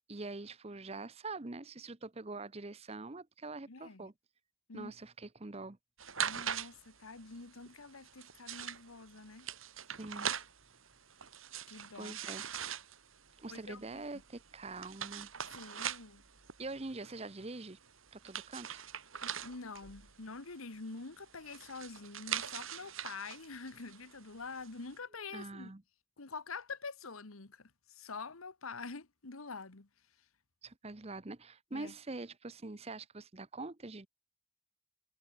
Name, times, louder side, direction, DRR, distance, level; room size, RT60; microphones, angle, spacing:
voice 1, 0.1-4.1 4.7-5.8 10.0-10.3 12.0-12.4 13.4-15.3 16.6-17.8 18.1-18.8 25.3-25.8 30.6-34.1, right 3 dB, 30° right, 0.8 m, -44 dB
voice 2, 3.7-4.1 4.7-4.9 6.2-9.5 11.7-12.1 13.5-14.0 15.5-16.2 19.4-25.7 26.2-29.9 31.7-31.9, left 4 dB, 85° left, 1.5 m, -46 dB
sound 1, 6.0-24.9, right 8 dB, 75° right, 4.2 m, -43 dB
head